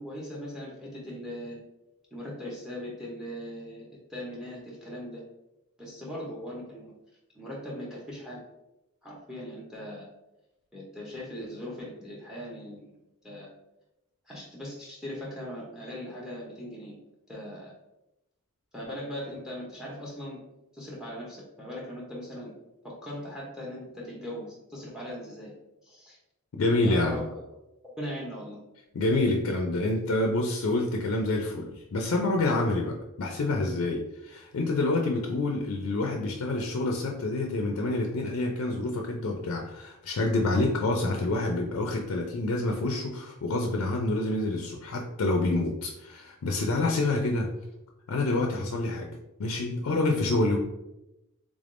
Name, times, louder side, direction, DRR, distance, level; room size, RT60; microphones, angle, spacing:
voice 1, 0.0-1.6 2.1-5.2 5.8-6.9 7.3-8.4 9.0-10.1 10.7-12.9 13.2-13.5 14.3-17.0 17.3-17.7 18.7-20.4 20.7-22.5 22.8-25.5 25.8-26.2 26.8-27.3 27.8-28.6, equal, 5° right, -3 dB, 0.6 m, -39 dB
voice 2, 26.6-27.2 28.9-47.5 48.1-49.1 49.4-50.6, left 2 dB, 75° left, 1 dB, 0.4 m, -27 dB
3.5 x 3.4 x 2.5 m, 0.92 s
head